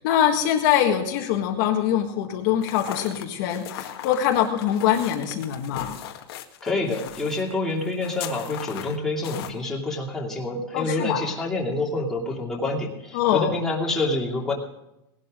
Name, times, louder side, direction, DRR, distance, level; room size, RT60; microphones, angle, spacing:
voice 1, 0.0-6.0 10.7-11.2 13.1-13.6, left 10 dB, 50° left, 2 dB, 1.7 m, -23 dB
sound 1, 2.6-9.5, left 12 dB, 75° left, 1.7 m, -38 dB
voice 2, 6.6-14.5, left 2 dB, 5° left, -4 dB, 2.8 m, -27 dB
19.0 x 12.0 x 3.8 m, 0.87 s
supercardioid pair, 165°, 13 cm